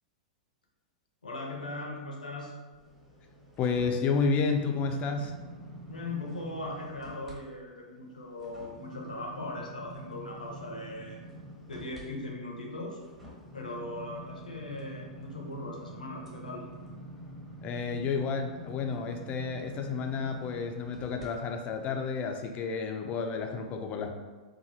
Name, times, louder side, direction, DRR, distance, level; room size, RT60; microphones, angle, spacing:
voice 1, 1.2-2.6 5.9-11.2 11.7-13.0 13.5-16.7, left 2 dB, 90° left, 0 dB, 0.6 m, -39 dB
sound 1, 2.7-7.4 7.8-21.3 21.7-21.9, equal, 5° right, 0.9 m, -47 dB
voice 2, 3.6-5.3 17.6-24.1, left 5 dB, 30° left, 4 dB, 0.4 m, -31 dB
2.8 x 2.3 x 2.7 m, 1.3 s
hypercardioid pair, 105°, 4 cm